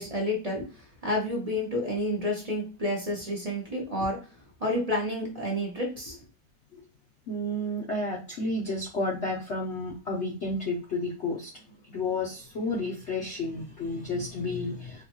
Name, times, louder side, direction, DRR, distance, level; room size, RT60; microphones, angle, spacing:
voice 1, 0.0-4.2 4.6-6.2, left 1 dB, 35° right, -2 dB, 0.5 m, -30 dB
voice 2, 7.3-15.0, left 2 dB, 70° left, -2 dB, 0.6 m, -31 dB
3.8 x 2.3 x 2.9 m, 0.32 s
omnidirectional pair, 1.9 m